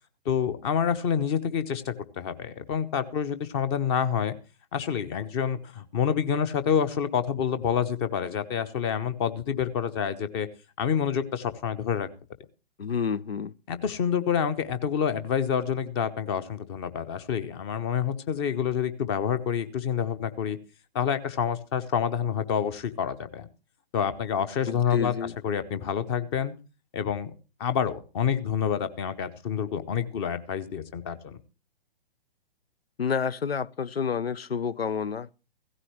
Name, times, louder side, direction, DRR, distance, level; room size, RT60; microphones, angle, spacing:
voice 1, 0.2-4.4 4.7-10.5 10.8-12.1 13.7-20.6 20.9-23.5 23.9-25.1 25.4-26.5 26.9-27.3 27.6-31.4, left 8 dB, 25° left, 0.9 m, -28 dB
voice 2, 12.8-13.5 24.7-25.3 33.0-35.3, left 6 dB, 85° left, 0.6 m, -29 dB
16.0 x 14.0 x 3.1 m
figure-of-eight pair, 125°, 29 cm